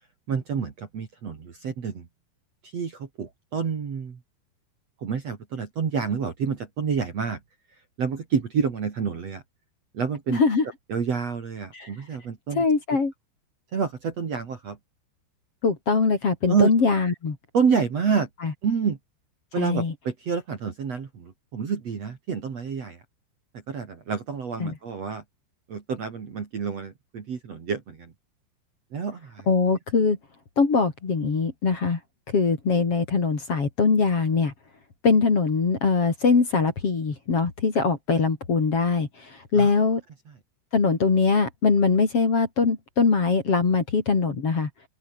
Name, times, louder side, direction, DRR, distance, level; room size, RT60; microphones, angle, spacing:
voice 1, 0.3-2.1 2.6-4.2 5.0-7.4 8.0-9.4 9.9-10.4 10.9-12.6 13.7-14.8 16.5-16.7 17.5-18.3 18.6-19.0 19.5-23.0 23.7-25.2 25.7-28.1 28.9-29.5 39.6-39.7, right 6 dB, 40° right, 3.1 m, -28 dB
voice 2, 10.3-10.6 11.7-11.9 12.6-13.1 15.6-17.4 18.4-18.5 19.6-19.9 24.6-24.7 29.5-30.2 30.6-32.0 32.3-34.5 35.0-40.0 40.7-44.7, left 4 dB, 35° left, 3.8 m, -22 dB
open air
omnidirectional pair, 5.1 m